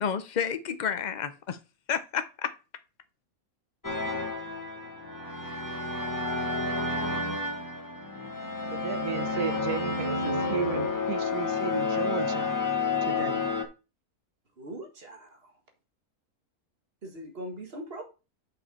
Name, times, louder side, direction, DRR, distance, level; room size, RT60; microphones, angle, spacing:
voice 1, 0.0-1.6 1.9-2.5, left 7 dB, 55° left, 0.4 m, -30 dB
sound 1, 3.8-13.6, left 3 dB, 15° left, 0.8 m, -30 dB
voice 2, 8.7-12.5 13.0-13.4, right 10 dB, 90° right, 1.3 m, -34 dB
voice 3, 14.6-15.5 17.0-18.0, right 1 dB, 40° right, 1.8 m, -41 dB
8.8 x 5.3 x 4.1 m
omnidirectional pair, 1.6 m